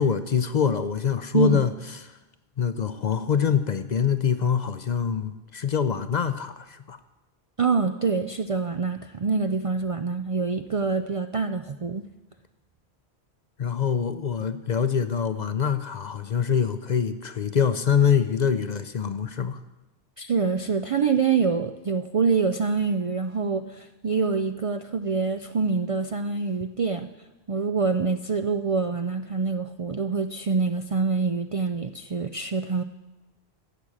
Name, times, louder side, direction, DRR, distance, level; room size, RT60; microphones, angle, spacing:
voice 1, 0.0-1.7 2.1-2.2 2.6-7.0 13.6-19.6, left 7 dB, 50° left, 11 dB, 0.6 m, -24 dB
voice 2, 7.6-12.0 20.2-27.1 27.5-32.8, right 4 dB, 50° right, 8 dB, 0.4 m, -25 dB
15.0 x 6.2 x 8.5 m, 1.0 s
omnidirectional pair, 1.1 m